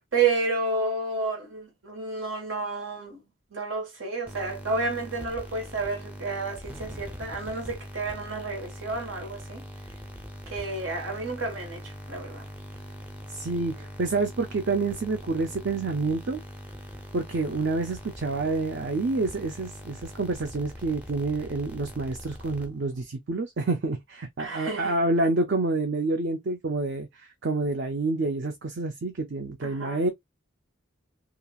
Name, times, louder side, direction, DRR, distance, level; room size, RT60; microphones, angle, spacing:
voice 1, 0.1-3.2 3.5-9.6 10.5-12.5 24.4-25.0 29.6-30.0, right 3 dB, 80° right, 1.4 m, -30 dB
sound 1, 4.3-23.0, equal, 10° right, 0.5 m, -42 dB
voice 2, 13.3-16.4 17.1-30.1, right 3 dB, 55° right, 0.5 m, -28 dB
2.8 x 2.4 x 2.2 m
head